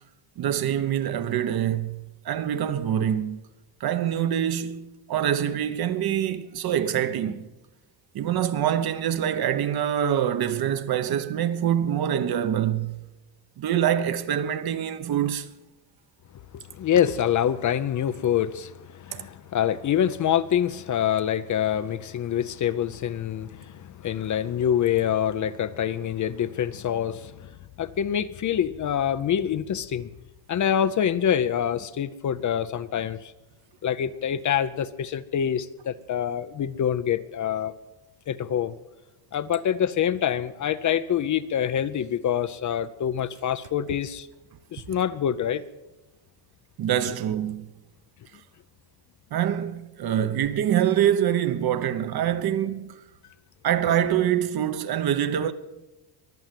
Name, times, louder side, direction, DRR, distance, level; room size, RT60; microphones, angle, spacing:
voice 1, 0.4-3.4 3.8-7.5 8.1-13.0 13.6-15.5 19.1-19.2 46.8-47.7 49.3-53.0 53.6-55.5, right 10 dB, 50° right, 1.0 m, -25 dB
voice 2, 16.5-30.1 30.5-33.3 33.8-37.7 38.3-38.8 39.3-44.3 44.7-45.6 47.1-47.2, left 9 dB, 40° left, 0.6 m, -26 dB
23.0 x 7.8 x 7.5 m
cardioid pair, 135°, 47 cm